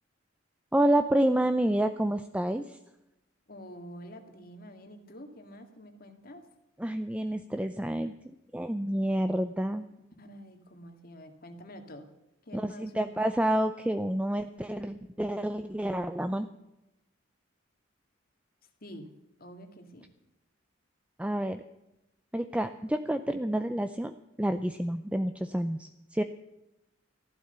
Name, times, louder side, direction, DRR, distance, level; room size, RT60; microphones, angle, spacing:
voice 1, 0.7-2.8 6.8-8.1 8.5-9.8 12.5-16.5 21.2-21.6 22.3-26.2, right 1 dB, 5° right, 9 dB, 0.5 m, -29 dB
voice 2, 3.5-6.4 10.2-12.1 12.5-13.1 18.8-19.1 19.4-20.1, equal, 50° left, 6 dB, 2.1 m, -47 dB
14.5 x 12.0 x 6.7 m, 0.93 s
head